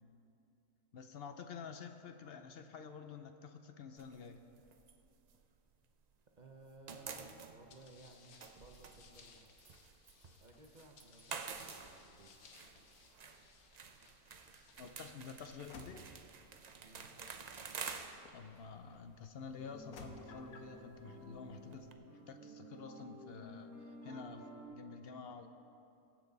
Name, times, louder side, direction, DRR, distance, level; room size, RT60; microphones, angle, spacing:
voice 1, 0.9-4.4 14.8-16.1 18.3-25.6, left 5 dB, 60° left, 7 dB, 0.7 m, -50 dB
sound 1, 4.0-6.2 6.5-21.9, right 5 dB, 75° right, 0.3 m, -50 dB
voice 2, 6.4-7.2 7.5-9.4 10.4-12.3 16.8-17.0, right 3 dB, 35° right, 2 dB, 0.8 m, -59 dB
Getting out of the car, 7.7-19.0 19.6-20.7, left 4 dB, 75° left, 1.4 m, -60 dB
sound 2, 19.6-24.7, equal, 10° right, 3.0 m, -53 dB
22.0 x 7.5 x 4.0 m, 2.8 s
omnidirectional pair, 1.6 m